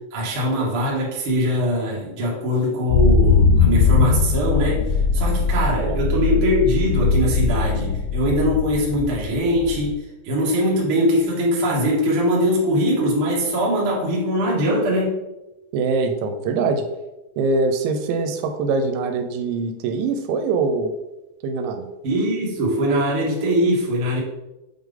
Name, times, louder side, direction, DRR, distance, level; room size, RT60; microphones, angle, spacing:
voice 1, 0.1-15.2 22.0-24.2, equal, 60° right, -5 dB, 1.3 m, -22 dB
sound 1, 2.9-9.9, left 4 dB, 85° left, 2.8 m, -20 dB
voice 2, 15.7-16.8 17.4-20.9 21.4-21.9, right 4 dB, 85° right, 6 dB, 2.9 m, -23 dB
7.7 x 3.7 x 3.6 m, 0.98 s
omnidirectional pair, 5.4 m